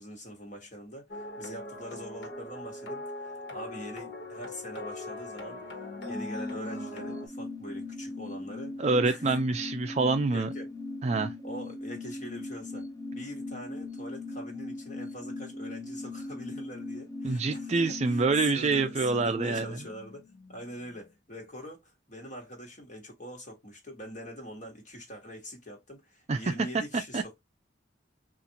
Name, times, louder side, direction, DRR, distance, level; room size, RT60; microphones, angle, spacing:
voice 1, 0.0-5.6 6.1-9.4 10.3-10.7 11.4-12.9 13.1-18.2 18.5-27.4, equal, 45° left, 1.4 m, -43 dB
sound 1, 1.1-7.3, left 2 dB, 70° left, 1.3 m, -41 dB
sound 2, 5.5-20.7 21.0-21.1, left 2 dB, 20° left, 0.7 m, -39 dB
voice 2, 8.8-10.5 11.0-11.3 17.2-19.7 26.3-26.4 26.9-27.2, right 3 dB, 35° right, 0.4 m, -26 dB
3.9 x 2.5 x 2.8 m
head